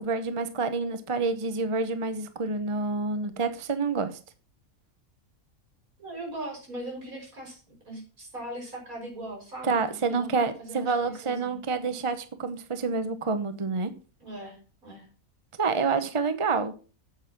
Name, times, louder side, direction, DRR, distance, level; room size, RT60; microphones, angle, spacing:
voice 1, 0.0-4.2 9.6-13.9 15.6-16.7, right 4 dB, 25° right, 10 dB, 0.9 m, -28 dB
voice 2, 6.0-11.6 14.2-15.1, right 1 dB, 80° right, -2 dB, 6.1 m, -40 dB
8.6 x 8.1 x 5.9 m, 0.36 s
omnidirectional pair, 1.5 m